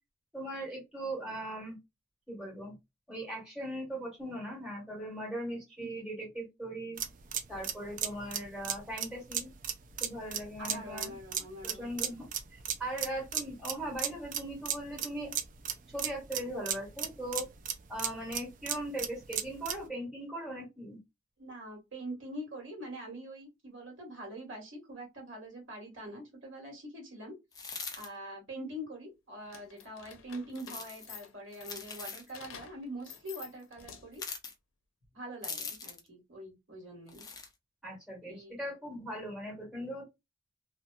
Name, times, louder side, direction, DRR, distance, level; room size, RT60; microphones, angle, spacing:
voice 1, 0.3-1.8 2.3-2.7 3.1-7.0 7.5-9.5 10.0-11.2 11.6-15.3 15.9-17.5 17.9-21.0 37.8-40.0, right 1 dB, 5° right, 1.4 m, -39 dB
sound 1, 7.0-19.9, right 9 dB, 40° right, 0.4 m, -36 dB
voice 2, 10.6-11.9 21.4-27.3 28.0-34.2 35.1-37.2 38.2-38.6, right 1 dB, 80° right, 1.5 m, -44 dB
sound 2, 27.5-28.1 30.5-31.1 31.6-32.3 34.1-34.5 35.4-36.1 37.1-37.5, left 5 dB, 20° left, 0.5 m, -41 dB
sound 3, 29.4-34.3, left 7 dB, 90° left, 0.6 m, -50 dB
2.7 x 2.2 x 2.3 m
head